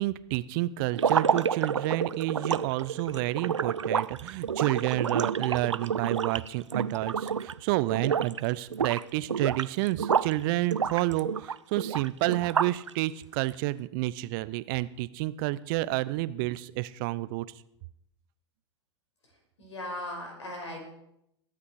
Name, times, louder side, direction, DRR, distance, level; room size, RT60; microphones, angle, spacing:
voice 1, 0.0-17.4, right 17 dB, 50° right, 17 dB, 0.6 m, -30 dB
sound 1, 0.9-7.6 7.9-8.4 8.7-10.4 10.7-12.9, right 7 dB, 90° right, 0.4 m, -29 dB
voice 2, 19.6-20.8, left 1 dB, 80° left, 1 dB, 5.7 m, -37 dB
20.5 x 8.5 x 4.8 m, 0.80 s
figure-of-eight pair, 95°, 15 cm